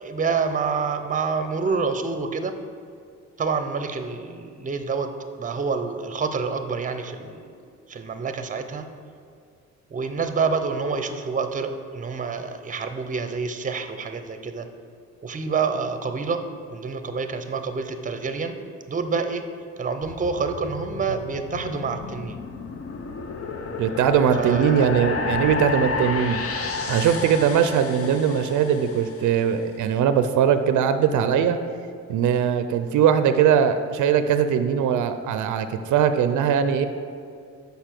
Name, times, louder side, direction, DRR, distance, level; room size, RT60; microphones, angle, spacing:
voice 1, 0.0-2.5 3.4-5.1 5.4-7.4 7.9-8.8 9.9-14.7 15.2-16.4 16.7-18.6 18.9-19.4 19.8-22.4 24.4-24.9, right 5 dB, 25° right, 8 dB, 0.6 m, -27 dB
sound 1, 20.0-29.4, left 4 dB, 50° left, 0.8 m, -31 dB
voice 2, 23.8-26.4 26.9-31.6 32.1-36.9, right 8 dB, 75° right, 10 dB, 0.5 m, -20 dB
6.8 x 5.3 x 5.9 m, 2.3 s
cardioid pair, 90°, 30 cm